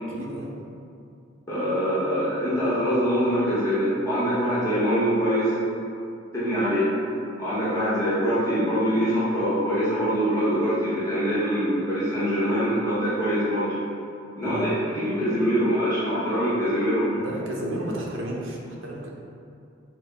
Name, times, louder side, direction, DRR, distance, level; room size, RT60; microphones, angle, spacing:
voice 1, 0.1-0.5 14.4-14.7 17.1-19.1, right 1 dB, 80° right, -2 dB, 0.6 m, -33 dB
voice 2, 1.5-5.5 6.3-6.9 7.4-13.7 14.4-17.1, equal, 15° left, -11 dB, 0.8 m, -24 dB
6.0 x 2.0 x 3.3 m, 2.5 s
head